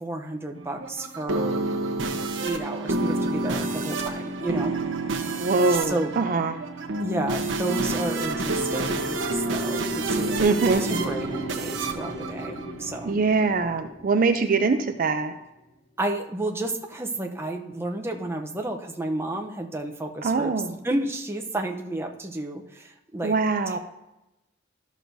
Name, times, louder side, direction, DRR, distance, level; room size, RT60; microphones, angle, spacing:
voice 1, 0.0-1.7 2.4-4.8 5.7-6.3 7.0-10.4 10.8-13.2 16.0-20.5 20.8-23.4 23.7-23.8, right 2 dB, 15° right, 2 dB, 0.7 m, -31 dB
sound 1, 0.6-13.2, right 2 dB, 80° right, 1.0 m, -29 dB
voice 2, 5.4-6.5 10.4-10.8 12.8-15.3 20.2-20.7 23.2-23.8, right 4 dB, 45° right, 7 dB, 0.4 m, -23 dB
sound 2, 7.1-15.5, left 1 dB, 50° left, 1.0 m, -37 dB
13.0 x 6.2 x 2.7 m, 0.92 s
head